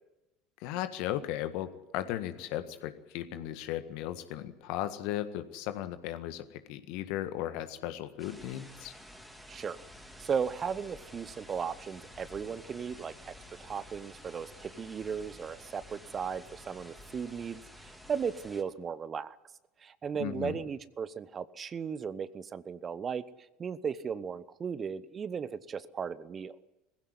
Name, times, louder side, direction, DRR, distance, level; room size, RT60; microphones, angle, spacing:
voice 1, 0.6-1.7 1.9-6.4 6.7-8.9 20.2-20.6, left 12 dB, 60° left, 10 dB, 1.6 m, -36 dB
sound 1, 8.2-18.6, equal, 5° right, 3.2 m, -51 dB
voice 2, 10.2-13.3 13.6-19.3 19.8-23.2 23.6-26.6, right 6 dB, 30° right, 17 dB, 1.0 m, -36 dB
20.5 x 16.0 x 9.8 m, 0.99 s
figure-of-eight pair, 70°, 0 cm